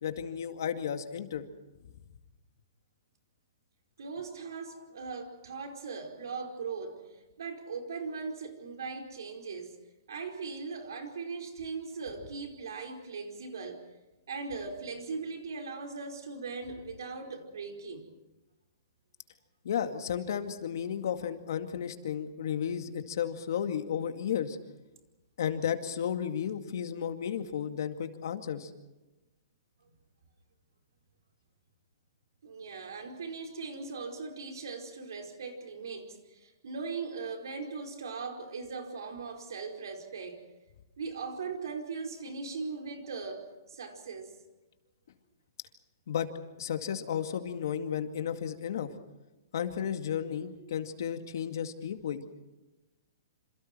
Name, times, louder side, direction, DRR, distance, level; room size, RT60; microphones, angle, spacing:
voice 1, 0.0-1.5 19.6-24.6 25.4-28.7 46.1-46.3 46.6-48.9 49.5-52.2, left 8 dB, 65° left, 7 dB, 2.2 m, -33 dB
voice 2, 4.0-9.8 10.1-13.8 14.3-18.0 29.8-29.9 32.4-40.4 41.0-44.3, right 4 dB, 80° right, 4 dB, 4.8 m, -39 dB
27.5 x 27.5 x 4.6 m, 1.0 s
hypercardioid pair, 155°, 2 cm